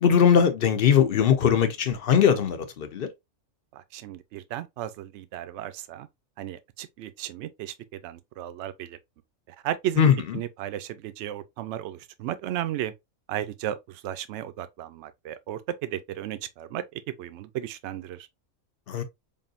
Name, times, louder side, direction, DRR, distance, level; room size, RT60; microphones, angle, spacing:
voice 1, 0.0-3.1 10.0-10.1 18.9-19.0, left 7 dB, 50° left, 0.8 m, -20 dB
voice 2, 3.7-6.1 6.4-9.0 9.6-10.1 10.3-12.9 13.3-18.3, right 12 dB, 65° right, 0.8 m, -34 dB
5.4 x 2.6 x 2.4 m
omnidirectional pair, 1.5 m